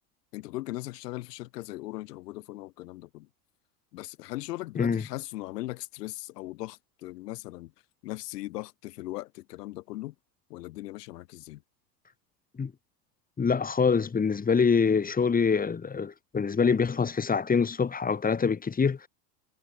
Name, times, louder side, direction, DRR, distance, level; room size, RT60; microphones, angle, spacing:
voice 1, 0.3-3.3 3.9-7.7 8.0-10.1 10.5-11.6, left 18 dB, 70° left, 6.8 m, -38 dB
voice 2, 13.4-19.1, left 5 dB, 15° left, 2.8 m, -25 dB
hypercardioid pair, 105°, 50 cm